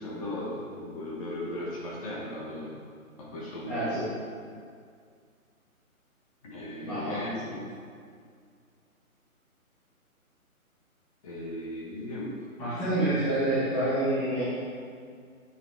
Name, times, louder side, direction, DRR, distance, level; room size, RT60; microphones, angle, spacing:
voice 1, 0.0-2.8 3.2-4.0 6.4-7.4 11.2-12.4, left 1 dB, 25° left, -4 dB, 1.2 m, -37 dB
voice 2, 3.7-4.0 6.8-7.2 7.5-7.6 12.6-14.5, right 1 dB, 5° left, -14 dB, 0.9 m, -28 dB
8.0 x 7.0 x 3.3 m, 2.1 s
figure-of-eight pair, 150°, 44 cm